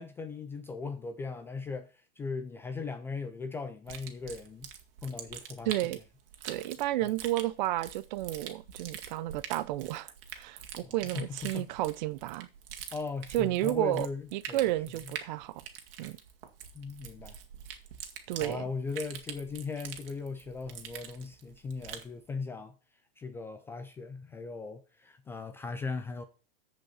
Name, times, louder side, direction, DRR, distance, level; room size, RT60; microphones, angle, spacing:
voice 1, 0.0-4.7 5.0-5.8 7.0-7.1 10.8-11.7 12.9-14.6 16.7-17.4 18.4-22.7 23.2-26.2, left 4 dB, 10° left, 0.4 m, -38 dB
sound 1, 3.9-22.1, right 9 dB, 60° right, 2.1 m, -45 dB
voice 2, 5.7-6.0 6.4-12.5 13.3-14.1 14.3-15.6 16.0-16.2 18.3-18.6, right 15 dB, 45° right, 0.7 m, -32 dB
14.5 x 5.3 x 4.2 m
hypercardioid pair, 140°, 31 cm